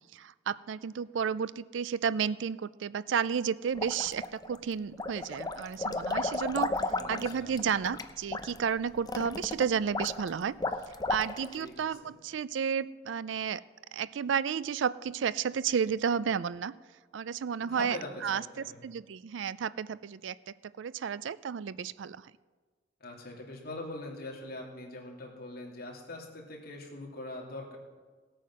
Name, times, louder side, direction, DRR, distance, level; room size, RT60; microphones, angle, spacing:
voice 1, 0.1-6.8 7.1-10.6 11.1-13.6 13.9-16.7 17.1-18.4 18.8-22.2, right 7 dB, 75° right, 18 dB, 0.4 m, -32 dB
sound 1, 3.7-4.6 4.9-11.6, left 2 dB, 20° left, 0.6 m, -34 dB
voice 2, 7.0-7.6 11.6-12.1 17.6-18.8 23.0-27.8, left 2 dB, 55° left, -1 dB, 2.8 m, -42 dB
17.0 x 8.7 x 6.2 m, 1.4 s
head